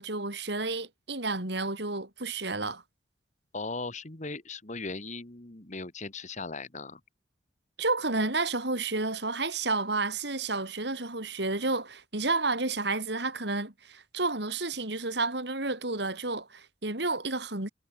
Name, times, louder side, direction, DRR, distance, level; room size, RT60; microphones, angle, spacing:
voice 1, 0.0-2.8 7.8-17.7, right 3 dB, 60° right, 4.0 m, -31 dB
voice 2, 3.5-7.0, left 3 dB, 40° left, 2.2 m, -38 dB
head